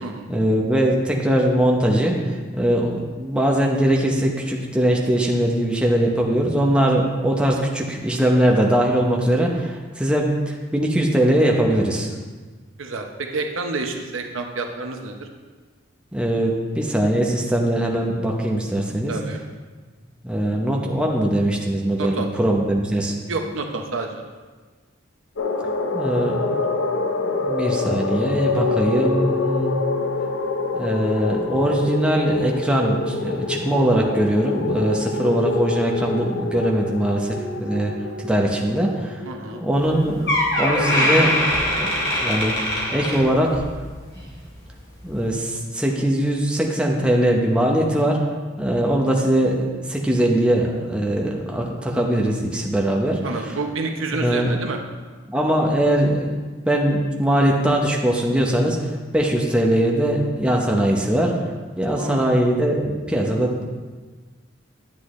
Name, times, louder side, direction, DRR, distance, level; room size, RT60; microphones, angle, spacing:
voice 1, 0.3-12.1 16.1-19.1 20.2-23.1 25.9-26.5 27.4-29.8 30.7-37.9 38.2-39.2 39.5-41.4 41.7-41.9 42.2-42.5 42.9-43.6 44.2-44.3 45.0-48.2 48.6-53.2 54.1-54.5 55.3-61.3 61.8-63.7, right 1 dB, 5° right, -1 dB, 0.8 m, -21 dB
voice 2, 12.8-15.3 19.1-19.4 22.0-22.3 23.3-24.3 39.2-39.6 53.2-54.8 61.9-62.4, right 3 dB, 85° right, 3 dB, 0.9 m, -29 dB
sound 1, 25.4-39.9, left 3 dB, 90° left, 0.9 m, -26 dB
Door, 39.8-39.9 40.3-43.8 44.1-44.4 45.1-45.2, left 1 dB, 60° left, 2.9 m, -22 dB
10.5 x 8.0 x 3.2 m, 1.4 s
head